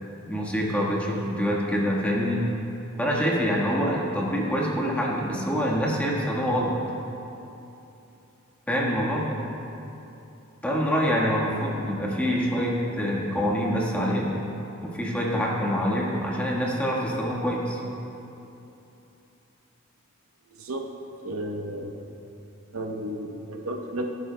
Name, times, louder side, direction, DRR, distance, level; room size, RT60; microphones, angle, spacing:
voice 1, 0.3-2.5 3.0-6.7 8.7-9.3 10.6-14.3 14.8-17.8, equal, 5° left, -4 dB, 1.4 m, -25 dB
voice 2, 20.5-20.9 21.2-21.9 22.7-24.1, right 1 dB, 90° right, 2 dB, 0.9 m, -33 dB
17.5 x 9.7 x 2.2 m, 2.9 s
head